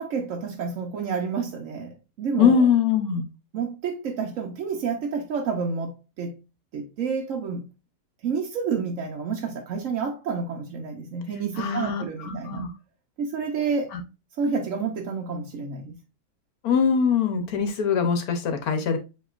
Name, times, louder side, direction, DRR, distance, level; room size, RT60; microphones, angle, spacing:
voice 1, 0.0-2.7 3.5-6.4 6.7-7.7 8.2-12.6 13.2-14.0 14.4-16.0, right 5 dB, 60° right, 1.0 m, -29 dB
voice 2, 2.4-3.3 11.6-12.7 13.9-14.0 16.6-19.0, left 6 dB, 70° left, 1.2 m, -22 dB
7.5 x 3.0 x 2.4 m
omnidirectional pair, 1.8 m